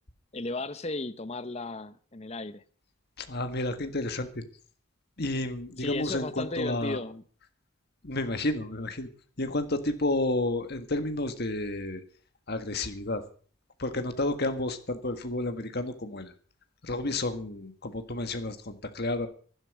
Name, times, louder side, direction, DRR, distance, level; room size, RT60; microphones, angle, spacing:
voice 1, 0.3-2.6 5.8-7.2, left 2 dB, 30° left, 0.8 m, -35 dB
voice 2, 3.2-4.4 5.2-7.0 8.0-9.1 9.4-12.0 12.5-13.2 13.8-16.3 16.8-19.3, left 2 dB, 45° left, 1.6 m, -31 dB
12.0 x 12.0 x 6.1 m
head